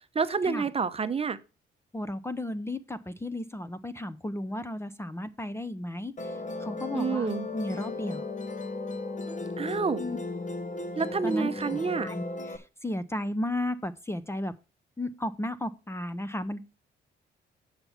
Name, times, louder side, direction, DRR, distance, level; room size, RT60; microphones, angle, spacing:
voice 1, 0.1-1.4 6.9-7.5 9.6-10.0 11.0-12.1, right 5 dB, 30° right, 0.7 m, -28 dB
voice 2, 1.9-8.2 10.0-10.2 11.2-14.5 15.0-16.6, left 1 dB, 15° left, 0.6 m, -34 dB
Musical instrument, 6.2-12.6, left 2 dB, 40° left, 1.1 m, -36 dB
8.7 x 5.8 x 5.5 m
cardioid pair, 90°, 20 cm